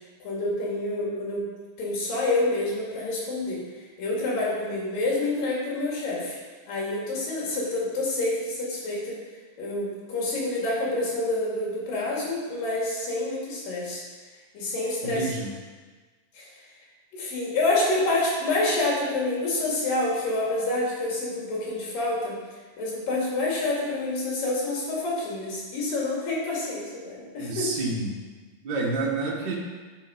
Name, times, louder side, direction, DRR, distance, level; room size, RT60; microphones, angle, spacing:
voice 1, 0.2-1.4 1.8-3.6 4.0-6.4 6.7-9.1 9.6-14.0 14.5-15.4 16.4-16.5 17.1-22.4 22.8-27.7, left 2 dB, 75° left, -5 dB, 4.0 m, -27 dB
voice 2, 15.0-15.5 27.4-28.1 28.6-29.5, right 3 dB, 40° right, -3 dB, 1.6 m, -28 dB
12.0 x 5.4 x 5.2 m, 1.4 s
omnidirectional pair, 4.0 m